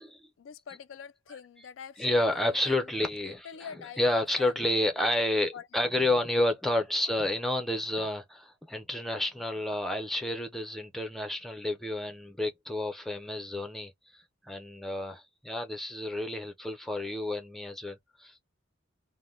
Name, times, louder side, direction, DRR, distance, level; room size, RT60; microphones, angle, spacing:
voice 1, 0.4-2.8 3.2-4.6 5.5-5.7, left 7 dB, 80° left, 0.4 m, -45 dB
voice 2, 2.0-18.4, left 1 dB, ahead, 0.5 m, -30 dB
2.1 x 2.1 x 3.5 m
head